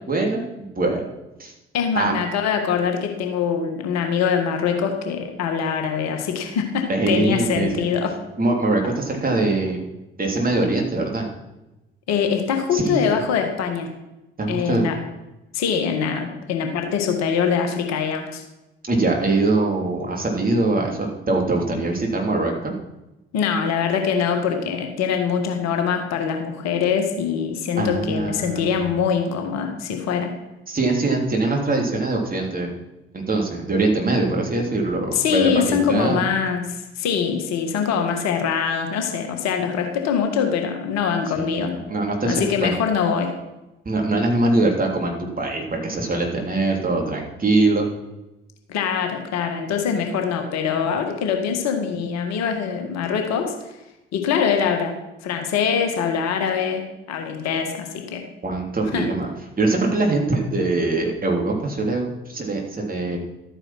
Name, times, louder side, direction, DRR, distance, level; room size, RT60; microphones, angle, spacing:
voice 1, 0.1-1.0 1.4-1.5 1.9-2.2 6.9-7.9 8.4-9.8 10.2-11.3 12.7-13.1 14.4-14.8 18.9-22.7 27.8-29.0 30.7-32.7 33.1-36.2 41.3-42.7 43.8-47.9 58.4-59.3 59.6-63.2, right 2 dB, 30° right, 0 dB, 3.4 m, -22 dB
voice 2, 1.7-8.1 12.1-13.9 14.5-14.9 15.5-18.4 23.3-30.3 35.1-41.7 42.3-43.3 48.7-53.5 54.1-55.0 55.2-58.2 58.9-59.1, left 7 dB, 60° left, 4 dB, 1.8 m, -23 dB
12.5 x 9.1 x 5.9 m, 0.97 s
figure-of-eight pair, 45°, 30 cm